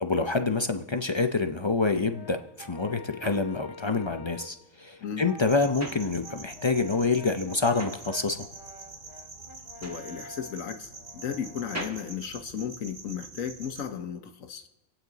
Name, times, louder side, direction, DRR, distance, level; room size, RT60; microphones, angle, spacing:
voice 1, 0.0-8.5, left 3 dB, 40° left, 7 dB, 0.4 m, -27 dB
Brass instrument, 2.1-4.6 5.2-12.2, left 3 dB, 20° left, 0.7 m, -48 dB
sound 1, 2.5-6.8 7.0-13.3, right 1 dB, 10° right, 1.2 m, -44 dB
sound 2, 5.4-13.9, right 3 dB, 75° right, 2.1 m, -46 dB
voice 2, 9.8-14.7, left 8 dB, 80° left, 7 dB, 1.4 m, -35 dB
26.0 x 8.8 x 4.0 m, 0.92 s
omnidirectional pair, 1.4 m